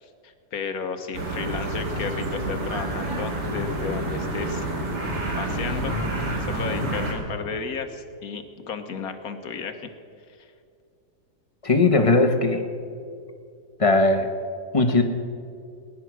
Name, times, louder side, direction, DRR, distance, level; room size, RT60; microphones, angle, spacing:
voice 1, 0.0-4.7 5.4-6.0 6.4-9.9, left 5 dB, 65° left, 8 dB, 1.4 m, -33 dB
sound 1, 1.1-7.1, right 1 dB, 80° right, 2.8 m, -28 dB
voice 2, 11.6-12.6 13.8-14.3 14.7-15.0, left 3 dB, 25° left, 6 dB, 0.9 m, -18 dB
19.5 x 10.5 x 6.1 m, 2.4 s
omnidirectional pair, 1.7 m